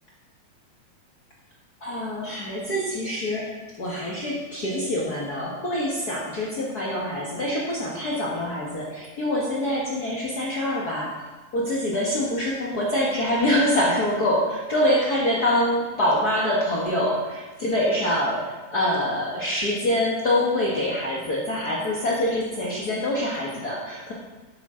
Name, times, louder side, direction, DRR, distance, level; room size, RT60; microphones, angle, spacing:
voice 1, 1.8-3.5 3.8-11.2 11.5-24.1, left 1 dB, 65° left, -5 dB, 0.9 m, -25 dB
12.0 x 8.3 x 3.8 m, 1.2 s
omnidirectional pair, 4.2 m